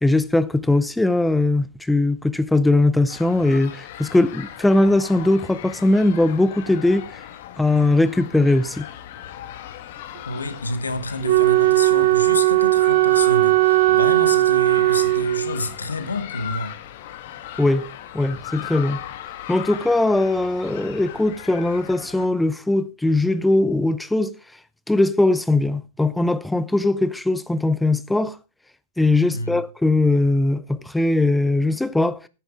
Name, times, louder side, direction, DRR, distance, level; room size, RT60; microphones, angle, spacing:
voice 1, 0.0-7.2 7.6-8.9 17.6-17.9 18.1-19.0 19.5-24.4 24.9-28.4 29.0-32.2, left 2 dB, 5° left, 0.5 m, -20 dB
sound 1, 3.1-22.3, left 11 dB, 55° left, 1.4 m, -38 dB
voice 2, 10.2-16.8 29.2-29.6, left 2 dB, 85° left, 1.7 m, -29 dB
Wind instrument woodwind instrument, 11.2-15.7, right 19 dB, 60° right, 1.1 m, -17 dB
10.0 x 9.3 x 4.9 m
figure-of-eight pair, 105°, 0 cm